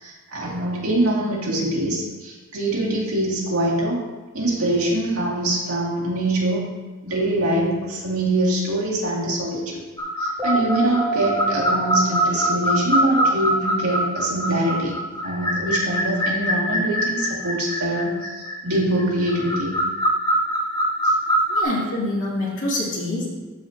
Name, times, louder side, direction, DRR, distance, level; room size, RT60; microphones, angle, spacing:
voice 1, 0.0-4.0 4.3-6.7 7.0-9.8 10.2-14.9 15.2-19.8 21.0-21.1, right 1 dB, 70° right, -4 dB, 2.3 m, -24 dB
sound 1, 10.0-21.6, equal, 15° left, 0.8 m, -24 dB
sound 2, 10.4-14.4, right 2 dB, 10° right, 2.6 m, -30 dB
voice 2, 21.5-23.2, left 2 dB, 60° left, -6 dB, 2.6 m, -25 dB
14.0 x 4.9 x 2.9 m, 1.3 s
head